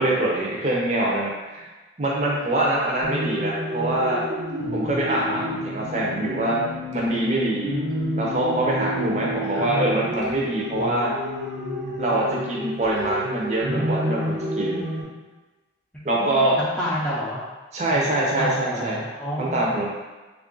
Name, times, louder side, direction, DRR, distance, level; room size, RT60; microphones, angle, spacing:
voice 1, 0.0-1.7 2.0-4.2 4.7-6.6 6.9-7.7 8.2-11.1 12.0-14.8 16.0-16.6 17.7-19.0 19.4-19.9, right 1 dB, 40° right, -3 dB, 0.6 m, -24 dB
vocal loop, 3.0-15.0, equal, 75° right, 0.8 m, -29 dB
voice 2, 9.4-9.7 15.9-17.4 17.9-19.6, equal, 5° left, -7 dB, 0.5 m, -30 dB
3.4 x 2.4 x 3.7 m, 1.2 s
head